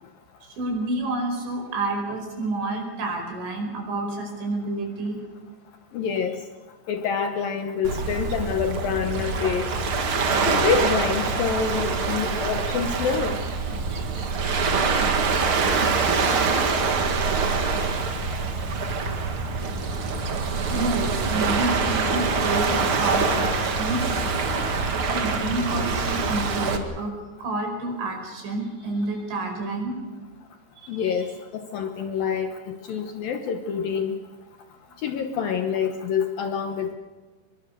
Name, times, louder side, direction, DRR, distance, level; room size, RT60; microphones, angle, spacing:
voice 1, 0.4-5.2 13.9-14.1 20.7-24.2 25.0-29.9 30.8-31.0, right 2 dB, 80° right, 2 dB, 7.4 m, -29 dB
voice 2, 5.9-6.4 6.9-9.7 10.5-13.4 30.9-34.2 35.0-36.9, left 6 dB, 70° left, 6 dB, 2.3 m, -27 dB
Waves surf, 7.8-26.8, right 4 dB, 55° right, 1.5 m, -25 dB
24.5 x 22.0 x 6.8 m, 1.3 s
omnidirectional pair, 5.3 m